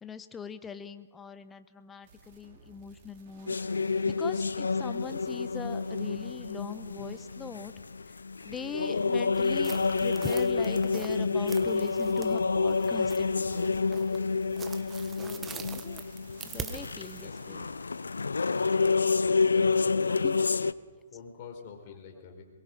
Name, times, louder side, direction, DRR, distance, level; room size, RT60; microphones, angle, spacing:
voice 1, 0.0-3.6 4.1-7.7 8.4-13.7 15.2-16.0 16.4-17.7 20.2-20.4, left 6 dB, 15° left, 12 dB, 1.0 m, -41 dB
sound 1, 2.0-18.2, right 4 dB, 40° right, 5.3 m, -57 dB
sound 2, 3.5-20.7, left 4 dB, 80° left, 0.5 m, -28 dB
sound 3, 9.3-17.3, right 6 dB, 15° right, 1.2 m, -45 dB
voice 2, 17.0-17.8 19.4-20.6 21.1-22.4, left 6 dB, 40° left, 4 dB, 4.2 m, -47 dB
22.5 x 22.0 x 5.4 m, 1.5 s
figure-of-eight pair, 130°, 0 cm